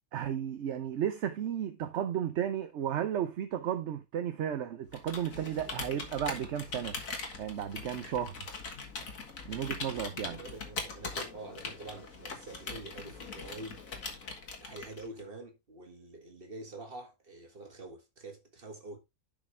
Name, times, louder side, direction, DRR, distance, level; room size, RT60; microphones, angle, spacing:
voice 1, 0.1-7.0 7.4-8.5 9.5-10.4, right 9 dB, 60° right, 0.9 m, -34 dB
Computer keyboard, 4.9-15.2, left 4 dB, 65° left, 2.0 m, -41 dB
voice 2, 10.3-13.8 14.6-19.0, right 2 dB, 40° right, 2.1 m, -46 dB
10.5 x 5.1 x 3.3 m
omnidirectional pair, 1.5 m